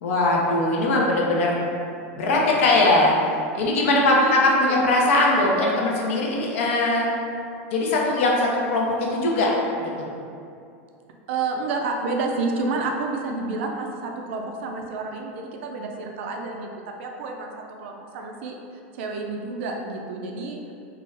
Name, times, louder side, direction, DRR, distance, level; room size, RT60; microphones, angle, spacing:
voice 1, 0.0-1.6 2.1-3.1 3.5-7.1 7.7-10.0, left 2 dB, 80° left, -2 dB, 0.5 m, -20 dB
voice 2, 4.0-4.7 11.3-16.7 17.0-17.5 17.8-18.6 18.9-20.6, right 3 dB, 65° right, 2 dB, 0.3 m, -29 dB
2.3 x 2.0 x 3.2 m, 2.5 s
supercardioid pair, 175°, 7 cm